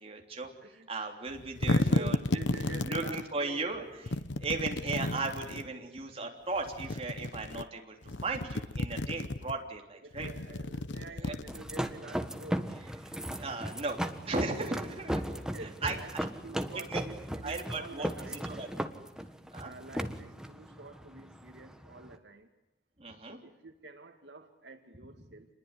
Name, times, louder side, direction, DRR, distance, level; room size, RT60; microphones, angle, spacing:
voice 1, 0.0-0.5 0.9-2.2 2.8-10.3 11.2-11.3 13.0-15.2 15.6-16.3 16.7-17.0 17.4-18.8 19.2-19.7 23.0-23.4, right 3 dB, 35° right, 2 dB, 3.4 m, -37 dB
sound 1, 1.3-3.3 4.1-5.7 6.6-7.6 8.0-9.5 10.1-11.9, left 2 dB, 90° left, 1.1 m, -33 dB
voice 2, 1.6-3.7 10.0-12.7 15.3-18.5 19.6-22.5 23.3-25.5, right 2 dB, 75° right, 5 dB, 2.1 m, -48 dB
sound 2, 11.5-22.2, equal, 5° right, 1.4 m, -37 dB
27.5 x 21.0 x 9.9 m, 0.93 s
head